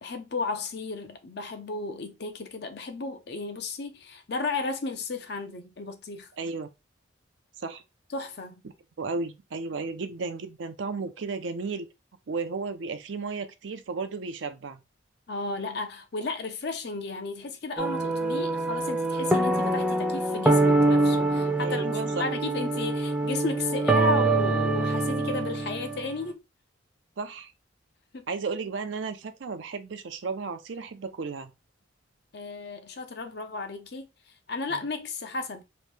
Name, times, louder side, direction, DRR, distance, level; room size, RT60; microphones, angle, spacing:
voice 1, 0.0-6.3 8.1-8.6 15.3-26.4 28.1-28.3 32.3-34.1 34.5-35.6, left 3 dB, 55° left, 0.6 m, -34 dB
voice 2, 6.4-6.7 7.6-7.8 9.0-11.9 12.3-14.8 21.6-22.2 27.2-27.5 28.3-31.5 34.7-34.8, right 4 dB, 75° right, 0.5 m, -34 dB
sound 1, 17.8-26.1, right 2 dB, 5° right, 0.5 m, -25 dB
3.1 x 2.6 x 3.2 m
head